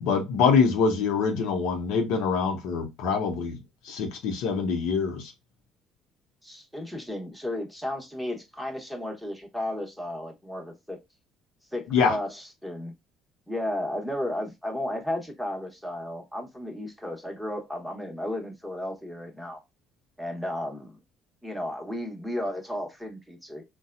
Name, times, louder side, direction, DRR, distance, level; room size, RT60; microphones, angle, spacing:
voice 1, 0.0-3.6 3.8-5.3 11.9-12.2, left 5 dB, 80° left, 0.8 m, -24 dB
voice 2, 6.4-11.0 11.7-12.9 13.5-19.6 20.2-21.0 21.4-23.6, left 1 dB, ahead, 1.1 m, -34 dB
4.1 x 2.2 x 2.5 m
supercardioid pair, 85°, 0 cm